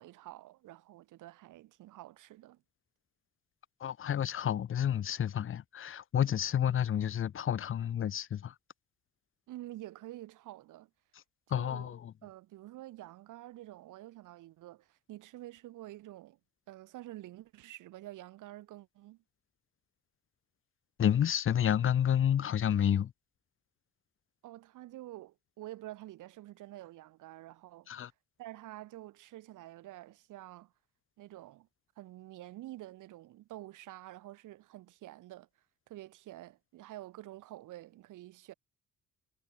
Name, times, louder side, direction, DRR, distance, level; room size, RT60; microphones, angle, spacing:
voice 1, 0.0-2.6 9.5-10.9 11.5-11.9 12.2-16.4 16.7-19.2 24.4-28.1 28.4-30.7 31.2-31.7 32.0-35.5 35.9-38.5, right 15 dB, 90° right, 5.8 m, -48 dB
voice 2, 3.8-8.5 11.5-12.1 21.0-23.1 27.9-28.1, left 9 dB, 45° left, 0.7 m, -30 dB
cardioid pair, 90°, 30 cm